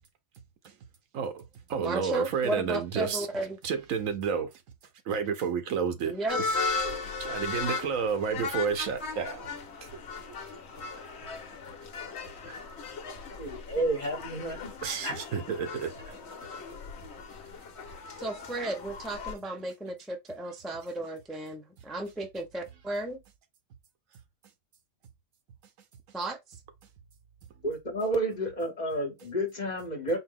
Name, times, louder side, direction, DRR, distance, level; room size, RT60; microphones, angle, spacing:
voice 1, 1.1-1.4 1.7-3.3 3.6-4.5 5.0-6.9 7.2-9.5 9.8-10.0 12.5-12.6 14.8-16.2, right 6 dB, 85° right, 1.2 m, -31 dB
voice 2, 1.8-3.6 6.0-6.4 18.2-23.2 26.1-26.4, right 2 dB, ahead, 0.5 m, -34 dB
sound 1, 6.3-19.4, left 4 dB, 60° left, 1.0 m, -37 dB
voice 3, 13.4-14.7 15.0-15.1 27.6-30.2, right 1 dB, 35° left, 1.0 m, -30 dB
4.3 x 2.1 x 3.7 m
omnidirectional pair, 1.4 m